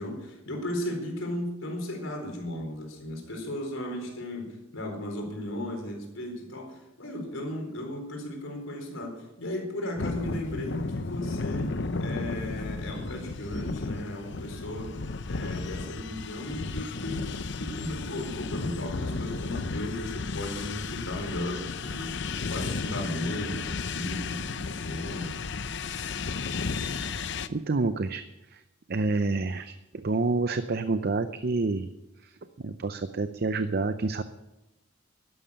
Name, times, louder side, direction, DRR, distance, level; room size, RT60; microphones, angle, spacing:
voice 1, 0.0-11.7 12.0-15.0 15.3-25.4, left 1 dB, 75° left, 2 dB, 4.3 m, -36 dB
sound 1, 10.0-27.5, left 4 dB, 60° left, 0.7 m, -33 dB
voice 2, 27.5-28.2 28.5-28.6 28.9-31.9 32.6-34.2, right 3 dB, 50° right, 11 dB, 0.6 m, -28 dB
12.0 x 11.5 x 8.7 m, 0.98 s
head